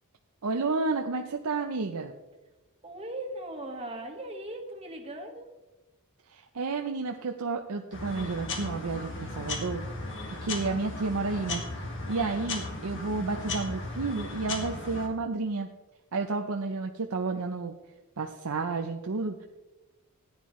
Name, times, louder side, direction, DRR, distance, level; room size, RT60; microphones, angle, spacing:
voice 1, 0.4-2.1 6.3-9.8 10.3-15.7 16.1-17.7 18.2-19.5, right 3 dB, 80° right, 4 dB, 0.7 m, -31 dB
voice 2, 2.8-5.5, right 1 dB, 25° right, 2 dB, 1.6 m, -38 dB
sound 1, 7.9-15.1, left 3 dB, 60° left, 1.9 m, -36 dB
14.5 x 9.8 x 3.2 m, 1.1 s
head